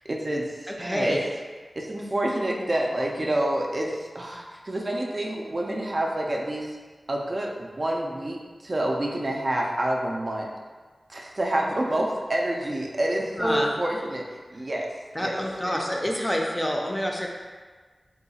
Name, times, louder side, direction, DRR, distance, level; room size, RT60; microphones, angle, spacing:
voice 1, 0.1-1.2 1.8-6.8 7.1-10.5 11.1-14.2 14.5-14.9 15.2-15.4, right 1 dB, 40° right, -1 dB, 0.4 m, -28 dB
voice 2, 0.7-1.2 13.4-13.7 15.1-17.3, equal, 15° left, -1 dB, 0.5 m, -27 dB
3.6 x 2.3 x 4.1 m, 1.4 s
wide cardioid pair, 90°, 0 cm